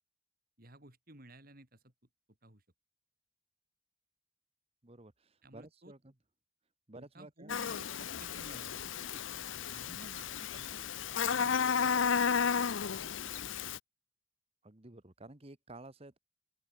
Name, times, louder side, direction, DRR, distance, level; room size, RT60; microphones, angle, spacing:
voice 1, 0.6-1.9 2.4-2.6 5.4-5.9 6.9-8.8 9.1-9.3 9.7-10.8 11.3-13.5, right 1 dB, 45° right, 5.0 m, -55 dB
voice 2, 4.8-6.1 6.9-7.5 14.6-16.2, right 2 dB, 30° right, 1.4 m, -52 dB
Buzz, 7.5-13.8, left 6 dB, 75° left, 0.7 m, -33 dB
open air
head